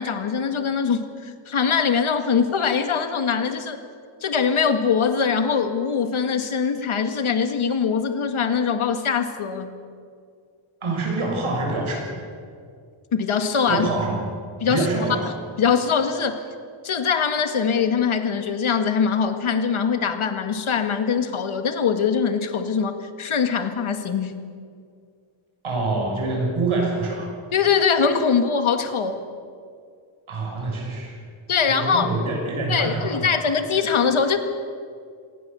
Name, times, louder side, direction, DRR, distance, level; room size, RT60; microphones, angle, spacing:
voice 1, 0.0-3.8 4.2-9.7 13.1-13.9 14.6-14.9 15.6-16.4 16.8-24.4 27.5-29.2 31.5-32.2 32.7-34.4, left 6 dB, 90° left, 7 dB, 2.0 m, -22 dB
voice 2, 10.8-12.1 13.7-14.3 14.7-15.3 25.6-27.3 30.3-31.2 31.7-33.2, right 3 dB, 85° right, 1 dB, 6.8 m, -25 dB
27.5 x 18.5 x 7.0 m, 2.2 s
wide cardioid pair, 125°, 48 cm